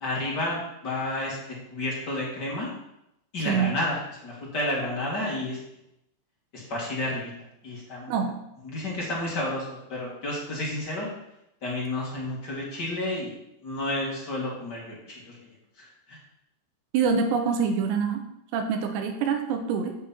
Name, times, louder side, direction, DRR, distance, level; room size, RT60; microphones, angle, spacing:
voice 1, 0.0-2.7 3.3-5.6 6.5-7.3 7.6-8.2 8.6-11.1 11.6-13.3 13.6-15.4 15.8-16.2, left 1 dB, 40° left, -4 dB, 1.6 m, -31 dB
voice 2, 8.1-8.4 16.9-18.2 18.5-20.0, right 6 dB, 85° right, 5 dB, 3.1 m, -25 dB
8.5 x 7.4 x 4.4 m, 0.83 s
omnidirectional pair, 4.9 m